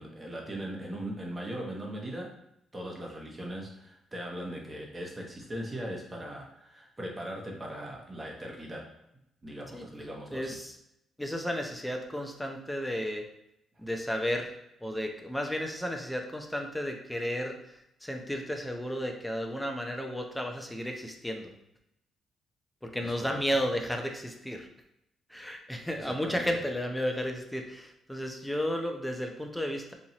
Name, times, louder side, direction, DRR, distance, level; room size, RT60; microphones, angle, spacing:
voice 1, 0.0-2.4 2.7-8.9 9.4-10.6 23.0-23.4 25.9-26.5, right 1 dB, 20° right, -1 dB, 1.0 m, -39 dB
voice 2, 10.3-10.8 11.2-13.3 13.8-14.5 14.8-21.5 22.8-24.7 25.3-29.9, equal, 5° left, 3 dB, 0.6 m, -33 dB
4.2 x 2.5 x 2.9 m, 0.82 s
cardioid pair, 90°, 0 cm